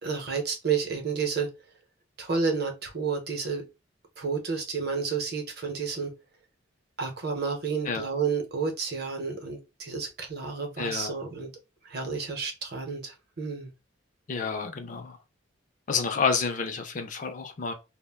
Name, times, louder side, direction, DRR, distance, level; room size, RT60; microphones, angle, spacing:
voice 1, 0.0-1.5 2.2-3.6 4.2-6.1 7.0-11.5 11.8-13.7, right 5 dB, 50° right, 0.7 m, -30 dB
voice 2, 10.8-11.1 14.3-15.2 15.9-17.7, left 5 dB, 40° left, 0.4 m, -29 dB
2.4 x 2.1 x 3.4 m
head